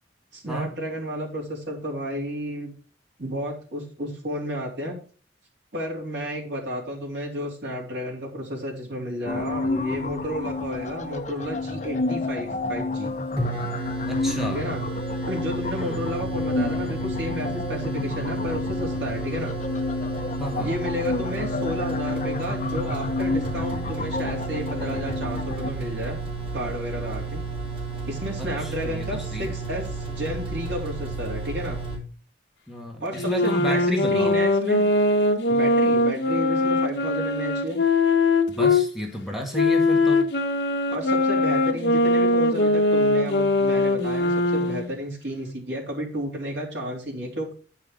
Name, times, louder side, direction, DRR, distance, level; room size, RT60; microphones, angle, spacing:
voice 1, 0.3-2.7 3.2-5.0 5.7-13.1 14.5-14.9 15.3-19.5 20.6-26.2 26.5-27.4 28.1-31.8 33.0-34.9 35.5-37.8 40.9-47.6, equal, 70° right, -2 dB, 3.7 m, -32 dB
sound 1, 9.3-25.7, left 3 dB, 40° left, 0.9 m, -29 dB
sound 2, 13.1-13.2 13.4-32.0, right 4 dB, 30° right, 3.4 m, -33 dB
voice 2, 14.1-14.6 15.8-16.0 20.4-20.7 28.4-29.5 32.7-34.3 38.5-40.3, equal, ahead, 0 dB, 1.7 m, -32 dB
sound 3, 33.1-38.8 39.5-44.9, left 2 dB, 70° left, 1.2 m, -21 dB
9.8 x 5.7 x 5.0 m, 0.40 s
head